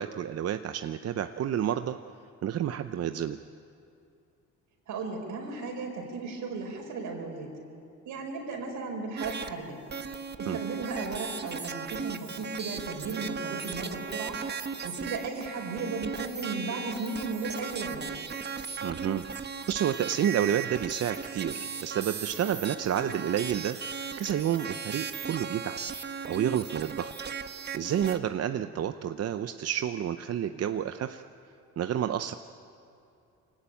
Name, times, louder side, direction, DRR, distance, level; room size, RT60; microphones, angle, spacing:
voice 1, 0.0-2.0 2.4-3.4 10.5-10.6 18.8-19.2 19.7-23.8 24.2-25.8 26.0-27.1 27.7-31.2 31.8-32.3, right 10 dB, 55° right, 9 dB, 0.7 m, -30 dB
voice 2, 4.9-7.5 8.0-9.8 10.4-14.4 14.8-18.1 28.5-28.8, right 3 dB, 80° right, 2 dB, 5.0 m, -35 dB
sound 1, 9.2-9.5 9.9-28.2, right 6 dB, 35° right, 1.1 m, -37 dB
24.0 x 18.0 x 9.0 m, 2.6 s
cardioid pair, 90°, 30 cm